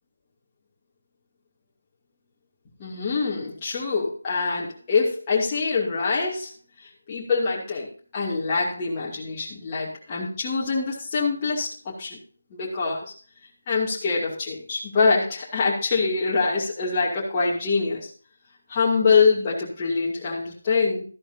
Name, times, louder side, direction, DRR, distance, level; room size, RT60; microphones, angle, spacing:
voice 1, 2.8-6.5 7.1-12.2 12.5-13.1 13.7-18.1 18.7-21.0, left 4 dB, 20° left, -6 dB, 2.5 m, -24 dB
13.5 x 11.0 x 2.7 m, 0.39 s
figure-of-eight pair, 165°, 0 cm